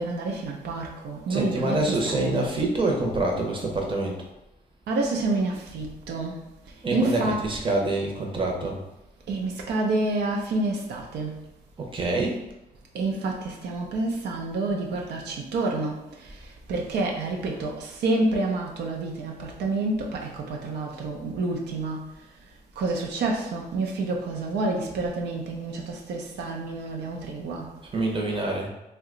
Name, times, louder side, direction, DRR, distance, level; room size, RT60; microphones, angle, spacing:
voice 1, 0.0-2.5 4.9-6.4 6.9-7.5 9.3-11.4 12.9-22.1 22.8-27.7, right 2 dB, 85° right, 0 dB, 0.5 m, -28 dB
voice 2, 1.3-4.1 6.8-8.8 11.8-12.4 27.9-28.7, right 2 dB, 30° right, 0 dB, 0.7 m, -26 dB
2.8 x 2.2 x 3.7 m, 0.92 s
cardioid pair, 110°, 17 cm